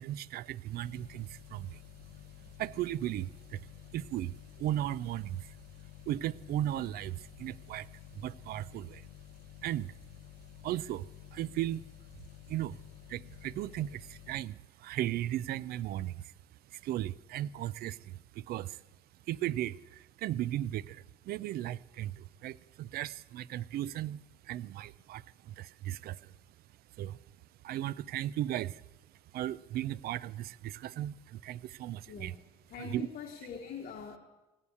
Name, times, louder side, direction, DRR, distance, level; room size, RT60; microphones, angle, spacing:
voice 1, 0.0-1.8 2.4-9.1 9.6-10.0 10.6-11.8 12.5-12.8 13.1-18.8 19.2-26.4 26.9-27.2 27.6-28.9 29.3-32.3 32.9-33.1, right 13 dB, 65° right, 0.5 m, -37 dB
sound 1, 0.8-14.4, left 14 dB, 90° left, 0.7 m, -52 dB
voice 2, 32.7-34.2, left 7 dB, 60° left, 1.6 m, -43 dB
16.0 x 9.7 x 8.3 m
cardioid pair, 110°, 17 cm